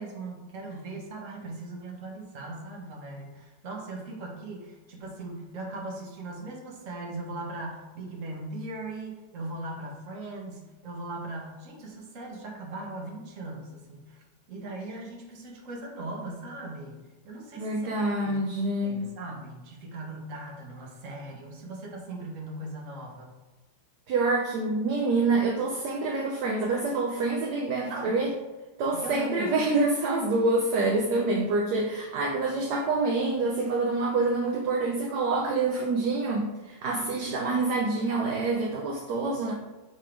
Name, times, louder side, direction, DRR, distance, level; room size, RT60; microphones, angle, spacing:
voice 1, 0.0-14.2 14.5-17.0 17.2-18.3 18.8-23.3 27.9-28.1 28.9-29.8 30.1-30.2, right 2 dB, 50° right, -1 dB, 1.4 m, -39 dB
voice 2, 17.6-19.2 24.1-28.3 28.8-39.5, right 3 dB, 70° right, 0 dB, 1.2 m, -26 dB
6.2 x 3.5 x 4.4 m, 1.2 s
omnidirectional pair, 2.0 m